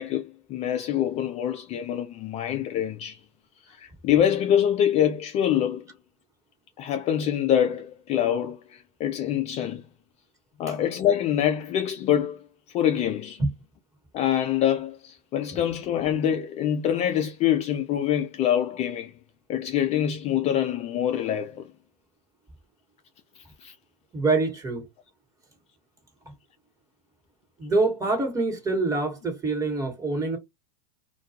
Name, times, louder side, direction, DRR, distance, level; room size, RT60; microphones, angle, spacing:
voice 1, 0.0-3.2 3.6-5.8 6.8-9.9 10.6-12.4 12.7-13.4 14.1-19.1 19.5-21.7 23.4-23.8, left 10 dB, 30° left, 0.3 m, -25 dB
voice 2, 24.1-24.8 27.6-30.4, right 3 dB, 15° right, 1.2 m, -25 dB
2.2 x 2.2 x 2.7 m
hypercardioid pair, 100°, 20 cm